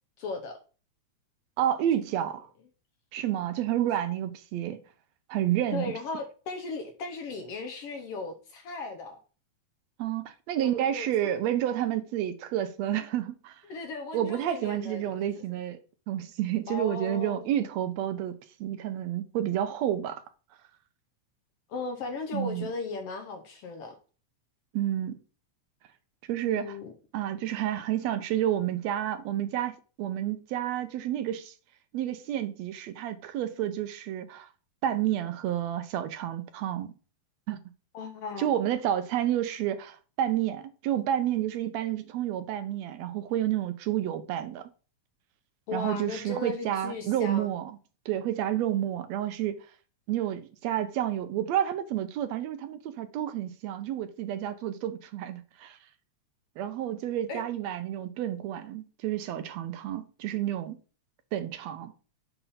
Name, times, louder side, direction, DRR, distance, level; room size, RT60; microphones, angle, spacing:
voice 1, 0.2-0.6 5.7-9.2 10.6-11.3 13.7-15.4 16.7-17.5 21.7-24.0 26.4-26.9 37.9-38.6 45.7-47.5 57.3-57.4, left 3 dB, 65° left, 1.6 m, -37 dB
voice 2, 1.6-2.5 3.1-4.8 5.3-5.9 10.0-13.6 14.1-15.8 16.1-20.2 22.3-22.7 24.7-25.2 26.3-26.8 27.1-31.5 31.9-34.5 34.8-36.9 37.5-37.6 38.4-44.7 45.7-47.8 48.1-49.6 50.1-55.8 56.6-60.8 61.3-61.9, right 11 dB, 80° right, 1.7 m, -30 dB
6.9 x 3.5 x 5.5 m
omnidirectional pair, 3.3 m